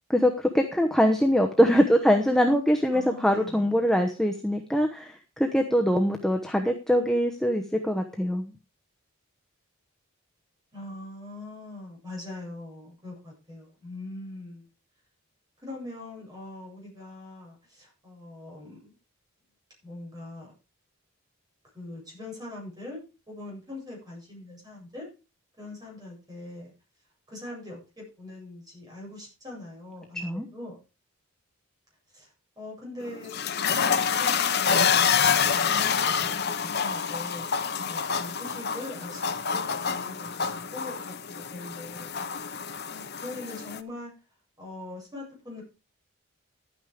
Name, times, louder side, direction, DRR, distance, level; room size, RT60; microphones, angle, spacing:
voice 1, 0.1-8.5 30.2-30.4, equal, ahead, 3 dB, 1.0 m, -23 dB
voice 2, 2.9-3.8 10.7-14.6 15.6-18.9 19.8-20.5 21.7-23.0 23.3-25.1 25.6-26.7 27.3-30.8 32.1-32.3 32.6-37.5 37.8-42.5 42.9-44.1 44.6-45.6, left 2 dB, 20° right, -2 dB, 7.9 m, -42 dB
sound 1, 33.0-43.8, left 6 dB, 50° left, 0.9 m, -27 dB
12.0 x 9.2 x 5.0 m, 0.32 s
head